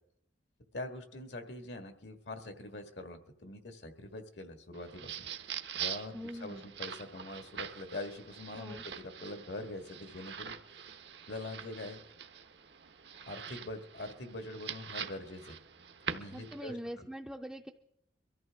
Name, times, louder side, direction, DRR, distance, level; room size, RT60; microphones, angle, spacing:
voice 1, 0.7-10.5 11.3-12.0 13.2-15.6 16.1-17.1, left 2 dB, 75° left, 6 dB, 1.6 m, -44 dB
sound 1, 4.7-16.7, right 8 dB, 70° right, 0.9 m, -44 dB
voice 2, 6.1-6.6 8.6-8.8 16.3-17.7, equal, 5° right, 2 dB, 0.5 m, -43 dB
23.0 x 14.0 x 3.5 m, 0.75 s
head